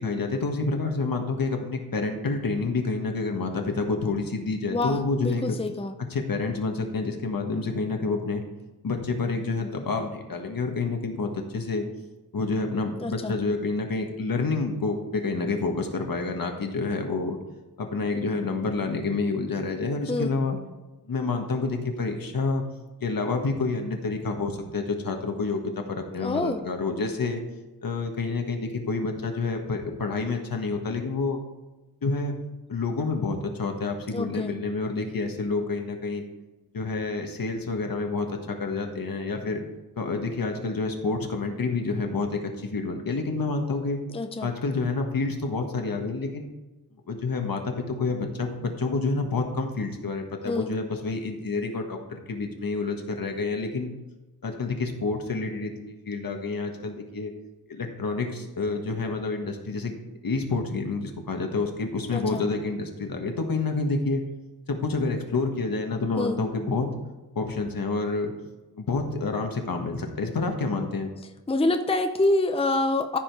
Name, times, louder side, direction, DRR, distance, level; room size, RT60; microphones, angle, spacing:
voice 1, 0.0-5.6 6.0-8.4 8.8-11.9 12.3-17.4 17.8-20.6 21.0-22.6 23.0-27.4 27.8-31.4 32.0-32.3 32.7-36.2 36.7-39.6 40.0-44.0 44.4-46.5 47.1-53.9 54.4-57.3 57.7-59.9 60.2-64.2 64.7-66.9 67.3-68.3 68.7-71.1, left 3 dB, 65° left, 3 dB, 1.5 m, -28 dB
voice 2, 4.7-5.9 13.0-13.3 20.1-20.3 26.2-26.6 34.1-34.5 44.1-44.5 50.5-50.7 62.1-62.4 66.2-66.4 71.5-73.2, left 2 dB, 15° left, 7 dB, 0.6 m, -26 dB
14.0 x 5.1 x 4.8 m, 1.1 s
wide cardioid pair, 95°, 37 cm